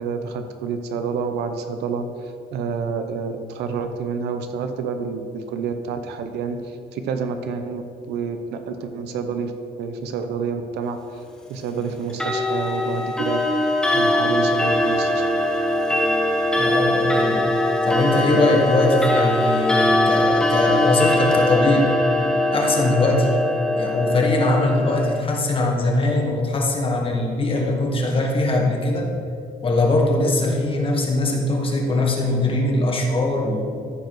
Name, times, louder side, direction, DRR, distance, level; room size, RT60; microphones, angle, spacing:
voice 1, 0.0-2.1 2.5-9.5 9.8-11.0 11.5-13.4 13.9-15.3, right 5 dB, 80° right, 7 dB, 0.8 m, -28 dB
Clock, 12.1-25.2, left 1 dB, 5° left, 1.2 m, -21 dB
voice 2, 16.5-17.5 17.8-21.9 22.5-23.4 23.7-29.1 29.6-33.8, left 2 dB, 30° left, 0 dB, 1.8 m, -21 dB
14.0 x 4.8 x 4.6 m, 2.4 s
cardioid pair, 110°, 17 cm